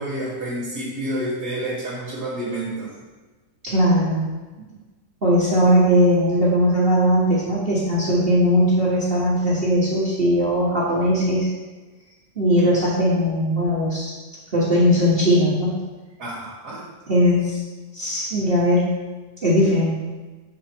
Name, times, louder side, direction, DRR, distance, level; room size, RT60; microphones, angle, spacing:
voice 1, 0.0-2.9 4.6-4.7 16.2-16.8, right 1 dB, 65° right, -7 dB, 1.9 m, -29 dB
voice 2, 3.6-4.2 5.2-11.5 12.3-14.1 14.5-15.8 17.1-17.6 17.9-18.9 19.4-19.9, equal, 35° right, -8 dB, 1.5 m, -19 dB
6.7 x 5.3 x 4.4 m, 1.2 s
omnidirectional pair, 1.9 m